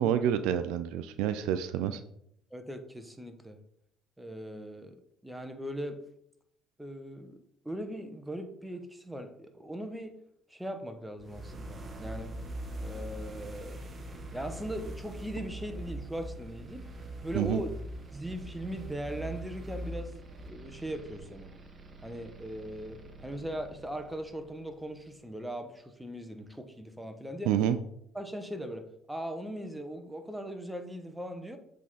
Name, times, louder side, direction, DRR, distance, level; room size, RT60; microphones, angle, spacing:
voice 1, 0.0-2.0 17.3-17.6 27.5-27.8, right 10 dB, 75° right, 11 dB, 0.4 m, -28 dB
voice 2, 2.5-3.6 4.2-5.0 5.2-6.0 6.8-7.4 7.6-10.2 10.5-12.4 12.8-13.8 14.3-16.8 17.2-17.7 18.1-21.5 22.0-27.5 28.1-31.6, equal, 5° right, 7 dB, 1.1 m, -39 dB
sound 1, 11.2-25.1, right 1 dB, 35° right, 1.1 m, -43 dB
7.3 x 3.7 x 4.2 m, 0.71 s
hypercardioid pair, 60°, 0 cm